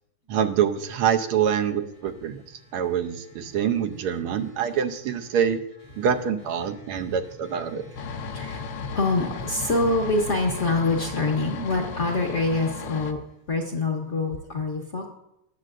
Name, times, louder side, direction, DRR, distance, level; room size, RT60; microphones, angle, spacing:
voice 1, 0.3-2.4 2.7-5.6 6.0-7.8, right 8 dB, 85° right, 6 dB, 1.6 m, -25 dB
voice 2, 6.8-7.1 7.4-13.2 13.5-15.1, left 3 dB, 45° left, 2 dB, 1.0 m, -26 dB
sound 1, 8.0-13.1, left 5 dB, 65° left, 1.3 m, -35 dB
18.5 x 7.5 x 2.5 m, 0.85 s
omnidirectional pair, 2.4 m